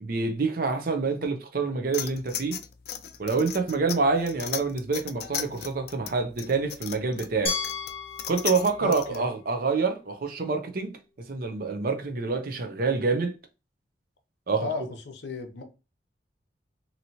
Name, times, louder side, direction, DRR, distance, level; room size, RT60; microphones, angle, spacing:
voice 1, 0.0-2.6 3.2-7.6 8.3-11.0 11.3-13.4 14.5-14.7, right 4 dB, 55° right, 0.6 m, -27 dB
sound 1, 1.9-9.2, left 9 dB, 60° left, 0.4 m, -36 dB
Glass, 7.5-10.4, left 5 dB, 35° left, 0.8 m, -36 dB
voice 2, 8.8-9.3 14.6-15.6, left 2 dB, 75° left, 0.7 m, -34 dB
2.9 x 2.7 x 2.7 m
head